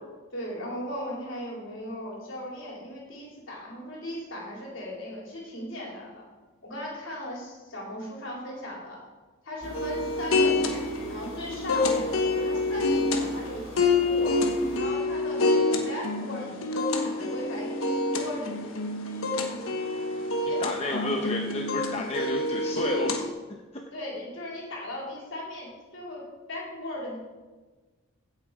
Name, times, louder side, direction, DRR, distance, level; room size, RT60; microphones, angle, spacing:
voice 1, 0.3-6.2 6.6-9.0 9.4-10.8 11.1-14.4 14.8-18.6 20.5-21.1 23.9-26.2 26.5-27.2, left 1 dB, 60° left, -3 dB, 4.0 m, -38 dB
sound 1, 9.6-14.8, right 1 dB, 30° right, 1.8 m, -43 dB
sound 2, 9.7-23.3, left 2 dB, 75° left, 1.3 m, -27 dB
voice 2, 20.6-23.2, left 1 dB, 30° left, 1 dB, 0.9 m, -31 dB
16.0 x 7.4 x 4.9 m, 1.3 s
head